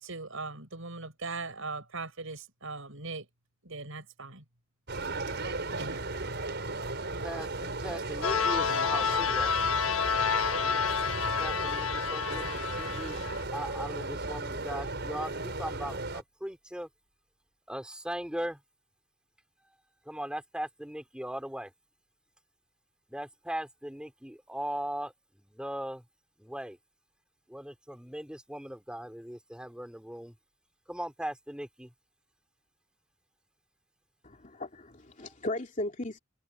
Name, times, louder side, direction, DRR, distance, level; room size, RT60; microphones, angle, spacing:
voice 1, 0.0-3.3 3.6-4.4 5.8-6.0, right 3 dB, 75° right, 5.7 m, -39 dB
sound 1, 4.9-16.2, right 2 dB, 55° right, 5.4 m, -36 dB
voice 2, 7.2-9.5 11.4-12.4 12.8-13.3 13.5-16.9 17.7-18.6 20.0-21.7 23.1-26.0 26.4-26.8 27.5-30.3 30.9-31.9 35.2-35.3, right 1 dB, 5° right, 3.1 m, -39 dB
sound 2, 8.2-13.4, left 6 dB, 80° left, 1.1 m, -29 dB
voice 3, 34.2-36.2, left 1 dB, 40° left, 2.9 m, -36 dB
head